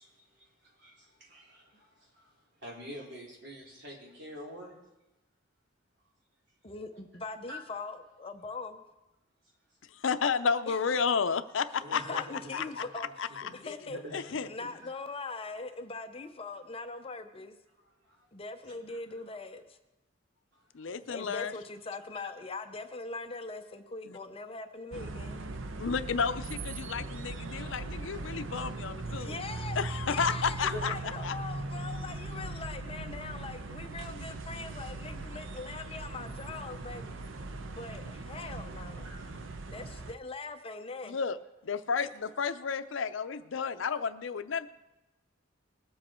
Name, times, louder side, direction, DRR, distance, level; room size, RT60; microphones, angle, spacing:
voice 1, 0.0-4.7 7.5-7.6 11.8-13.1 13.4-14.8 17.8-18.3 18.7-18.8 21.1-21.2 28.3-28.7 30.6-31.2 38.9-39.4, left 1 dB, 65° right, -3 dB, 3.7 m, -46 dB
voice 2, 6.6-8.8 10.7-10.8 11.9-14.0 14.4-17.6 18.3-19.8 21.1-25.4 29.1-37.1 37.7-39.1 39.7-41.2, left 3 dB, 30° left, 7 dB, 0.7 m, -41 dB
voice 3, 9.9-12.2 12.5-12.8 13.2-13.7 14.1-14.5 20.8-21.5 24.1-24.2 25.8-29.4 29.8-30.9 31.2-31.3 41.0-41.4 41.6-44.7, left 6 dB, 75° left, 12 dB, 0.6 m, -32 dB
sound 1, 24.9-40.1, right 2 dB, 85° right, 0.7 m, -39 dB
20.0 x 7.6 x 4.4 m, 0.99 s
head